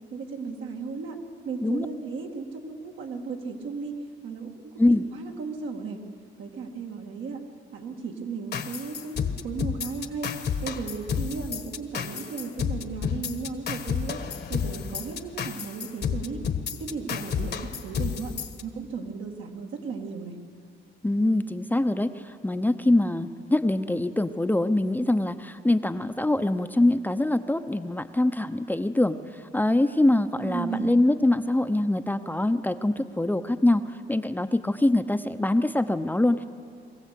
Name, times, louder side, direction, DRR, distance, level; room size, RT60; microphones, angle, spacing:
voice 1, 0.1-1.2 1.4-4.0 4.2-6.0 6.4-7.4 7.7-10.3 10.6-14.2 14.5-16.4 16.8-18.3 18.6-20.4 30.4-30.9, right 5 dB, 80° right, 2 dB, 2.3 m, -35 dB
sound 1, 8.5-18.6, left 7 dB, 55° left, 1.4 m, -31 dB
voice 2, 21.0-36.4, left 1 dB, 10° left, 9 dB, 0.7 m, -24 dB
22.5 x 15.5 x 8.4 m, 2.2 s
cardioid pair, 90°, 20 cm